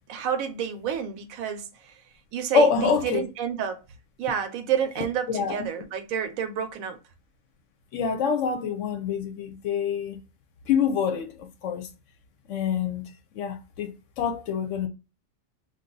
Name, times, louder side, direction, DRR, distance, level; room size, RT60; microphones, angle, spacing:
voice 1, 0.1-2.0 2.3-3.8 4.2-7.0, right 8 dB, 80° right, 1.0 m, -29 dB
voice 2, 2.5-3.2 5.3-5.7 7.9-10.2 10.7-11.9 12.5-13.0 13.3-13.9 14.2-14.9, left 6 dB, 70° left, 0.8 m, -25 dB
2.6 x 2.3 x 3.8 m
omnidirectional pair, 1.4 m